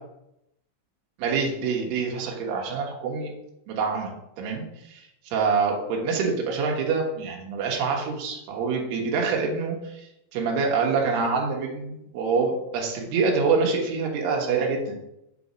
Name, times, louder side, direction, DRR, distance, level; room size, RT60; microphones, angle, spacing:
voice 1, 1.2-3.3 3.7-10.1 10.3-14.9, right 4 dB, 90° right, -1 dB, 3.2 m, -26 dB
7.7 x 4.1 x 5.0 m, 0.83 s
omnidirectional pair, 4.5 m